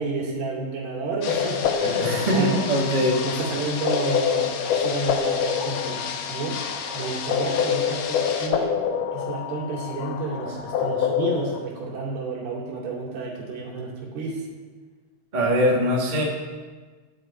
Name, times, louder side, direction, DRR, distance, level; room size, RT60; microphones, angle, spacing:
voice 1, 0.0-2.6 3.2-14.5, right 3 dB, 70° right, -4 dB, 4.9 m, -30 dB
sound 1, 1.2-8.5, left 6 dB, 70° left, 2.5 m, -34 dB
sound 2, 1.3-11.6, left 8 dB, 85° left, 1.8 m, -27 dB
voice 2, 2.0-3.2 15.3-16.2, equal, 35° right, -3 dB, 0.6 m, -22 dB
13.0 x 11.5 x 4.5 m, 1.4 s
omnidirectional pair, 4.8 m